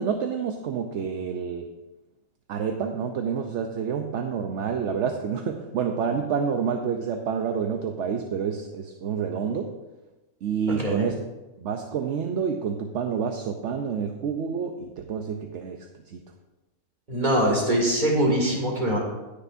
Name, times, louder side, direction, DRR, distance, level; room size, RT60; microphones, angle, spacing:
voice 1, 0.0-1.7 2.5-9.7 10.4-11.2 11.6-16.2, right 6 dB, 60° right, 4 dB, 0.9 m, -28 dB
voice 2, 17.1-19.0, right 1 dB, 30° right, -2 dB, 2.5 m, -23 dB
17.5 x 6.7 x 2.6 m, 1.1 s
omnidirectional pair, 1.6 m